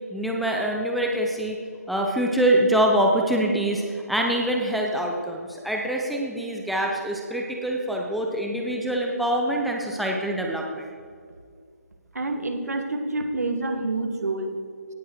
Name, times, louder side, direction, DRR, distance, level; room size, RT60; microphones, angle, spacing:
voice 1, 0.1-1.6 1.9-10.9, right 1 dB, ahead, -1 dB, 0.7 m, -25 dB
voice 2, 12.1-14.5, right 2 dB, 70° right, 7 dB, 1.6 m, -27 dB
17.5 x 7.5 x 4.6 m, 2.1 s
figure-of-eight pair, 150°, 9 cm